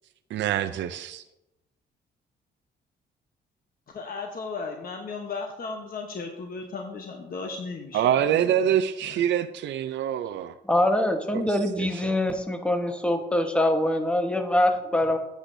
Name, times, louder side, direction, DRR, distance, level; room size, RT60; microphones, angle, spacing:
voice 1, 0.3-1.2 7.9-10.5 11.3-12.1, right 10 dB, 65° right, 8 dB, 0.5 m, -26 dB
voice 2, 3.9-8.5 9.0-9.2, left 4 dB, 45° left, 3 dB, 1.0 m, -36 dB
voice 3, 10.6-15.2, left 1 dB, 5° left, 5 dB, 1.2 m, -24 dB
11.5 x 8.4 x 2.7 m, 0.91 s
cardioid pair, 90°, 20 cm